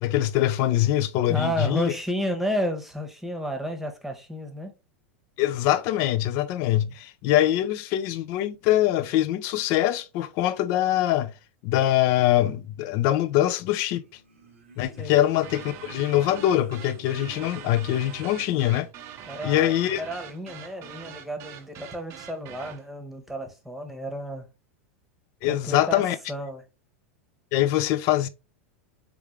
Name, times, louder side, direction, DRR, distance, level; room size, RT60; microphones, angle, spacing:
voice 1, 0.0-1.9 5.4-11.3 11.6-14.0 14.8-18.9 19.4-20.0 25.4-26.2 27.5-28.3, left 13 dB, 50° left, 0.5 m, -23 dB
voice 2, 1.3-4.7 15.0-15.1 19.3-24.5 25.4-26.0 26.3-26.6, equal, 5° right, 1.0 m, -31 dB
sound 1, 14.0-18.9, right 2 dB, 80° right, 0.9 m, -49 dB
sound 2, 15.4-22.9, right 9 dB, 45° right, 0.6 m, -43 dB
3.7 x 3.5 x 3.2 m
hypercardioid pair, 90°, 7 cm